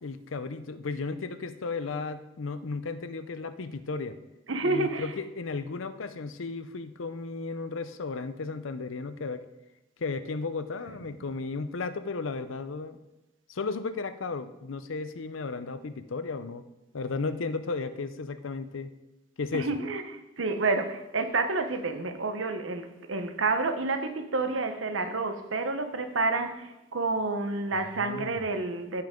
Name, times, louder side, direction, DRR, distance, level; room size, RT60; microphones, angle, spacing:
voice 1, 0.0-4.2 4.6-9.4 10.0-13.0 13.5-16.6 16.9-18.9 19.4-19.8 27.9-28.4, left 4 dB, 80° left, 0.6 m, -34 dB
voice 2, 4.5-5.1 19.5-29.0, right 3 dB, 75° right, 1.0 m, -29 dB
15.0 x 5.8 x 3.7 m
head